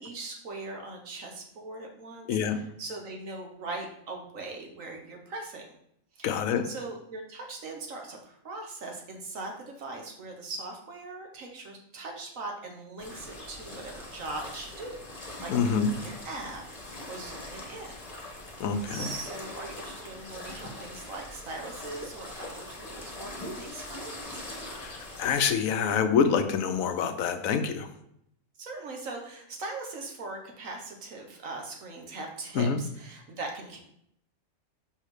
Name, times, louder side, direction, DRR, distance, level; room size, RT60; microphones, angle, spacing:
voice 1, 0.0-5.6 6.1-6.3 6.6-17.9 18.6-23.3 23.6-24.5 28.6-33.8, right 2 dB, 70° right, 2 dB, 1.5 m, -40 dB
voice 2, 2.3-2.6 6.2-6.7 15.5-15.9 18.6-19.1 24.6-27.9 32.5-32.8, left 6 dB, 75° left, 8 dB, 1.0 m, -26 dB
sound 1, 13.0-25.5, left 1 dB, 30° left, 1.1 m, -42 dB
5.6 x 4.3 x 4.9 m, 0.74 s
omnidirectional pair, 1.5 m